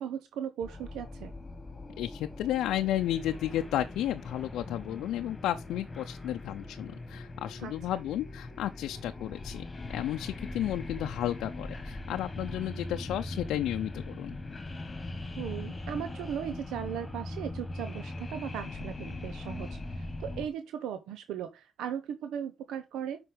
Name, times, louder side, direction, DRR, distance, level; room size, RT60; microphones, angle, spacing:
voice 1, 0.0-1.3 7.6-7.7 15.4-23.2, right 9 dB, 85° right, 0.8 m, -37 dB
sound 1, 0.6-20.5, left 2 dB, 25° left, 1.7 m, -41 dB
voice 2, 2.0-9.6 9.9-14.4, left 12 dB, 85° left, 0.5 m, -33 dB
7.7 x 5.3 x 5.0 m
cardioid pair, 90°, 0 cm